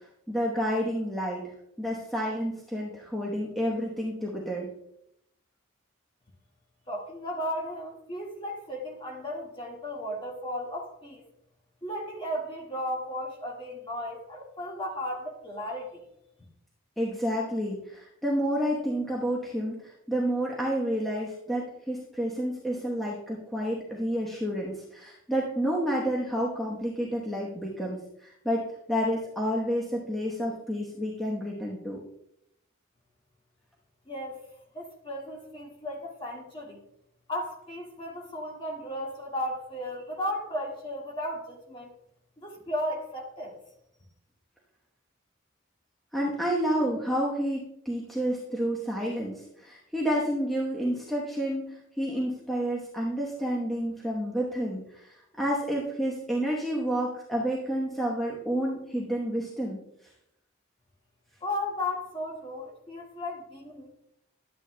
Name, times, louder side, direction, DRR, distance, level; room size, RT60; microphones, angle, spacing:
voice 1, 0.3-1.5 1.8-4.7 17.0-32.0 46.1-59.8, equal, ahead, -4 dB, 1.0 m, -30 dB
voice 2, 6.9-11.2 11.8-16.0 34.1-34.4 34.7-36.8 37.3-41.9 42.4-43.6 61.4-63.9, left 1 dB, 25° left, -1 dB, 1.7 m, -35 dB
11.5 x 8.8 x 2.2 m, 0.78 s
head